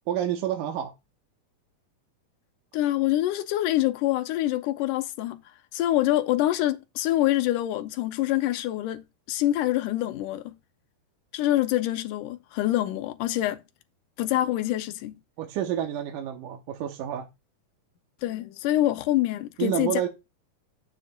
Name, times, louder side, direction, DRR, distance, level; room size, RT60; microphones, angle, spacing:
voice 1, 0.1-0.9 15.4-17.3 19.6-20.1, right 11 dB, 80° right, 2.4 m, -29 dB
voice 2, 2.7-5.4 5.7-10.5 11.3-13.6 14.2-15.2 18.2-20.0, left 14 dB, 80° left, 2.0 m, -25 dB
9.2 x 7.2 x 2.3 m
omnidirectional pair, 3.7 m